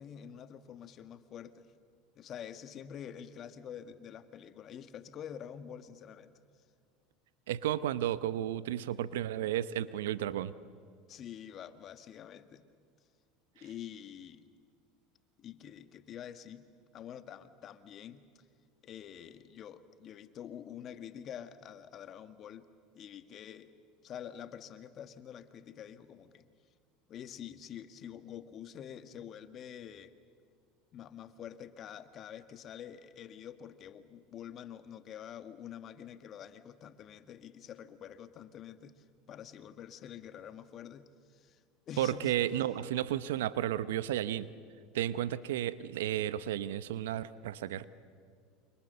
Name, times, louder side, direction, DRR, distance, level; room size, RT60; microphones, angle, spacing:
voice 1, 0.0-1.7 2.1-6.3 11.1-12.6 13.6-14.5 15.4-16.7 16.9-18.2 18.8-22.6 22.9-23.7 24.0-26.5 27.1-30.1 30.9-42.4, left 9 dB, 45° left, 10 dB, 1.6 m, -47 dB
voice 2, 7.5-10.5 42.0-44.5 44.9-47.8, right 12 dB, 80° right, 15 dB, 0.9 m, -33 dB
29.5 x 26.0 x 6.9 m, 2.1 s
hypercardioid pair, 90°, 0 cm